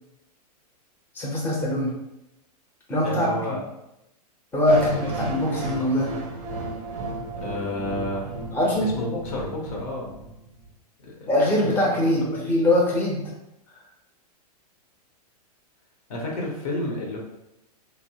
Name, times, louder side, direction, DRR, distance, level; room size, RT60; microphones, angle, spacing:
voice 1, 1.1-1.9 2.9-3.6 4.5-6.1 8.5-8.9 11.3-13.3 13.7-13.8, left 1 dB, 10° left, -4 dB, 0.7 m, -22 dB
voice 2, 2.9-3.6 5.0-5.5 7.4-8.3 8.8-10.1 11.0-11.3 11.6-11.7 12.3-12.4 16.1-17.2, left 1 dB, 65° left, -1 dB, 0.9 m, -31 dB
sound 1, 4.7-10.7, right 2 dB, 40° right, 0.5 m, -34 dB
2.9 x 2.0 x 2.7 m, 0.86 s
hypercardioid pair, 120°, 20 cm